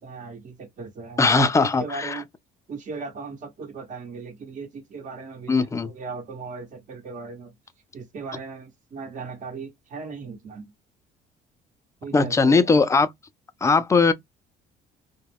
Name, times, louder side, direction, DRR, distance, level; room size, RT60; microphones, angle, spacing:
voice 1, 0.0-2.2 2.7-7.5 7.9-10.7 12.0-12.7, right 4 dB, 50° right, 1.1 m, -37 dB
voice 2, 1.2-2.2 5.5-5.9 12.1-13.1 13.6-14.1, left 4 dB, 15° left, 0.4 m, -19 dB
2.3 x 2.1 x 3.4 m
cardioid pair, 110°, 17 cm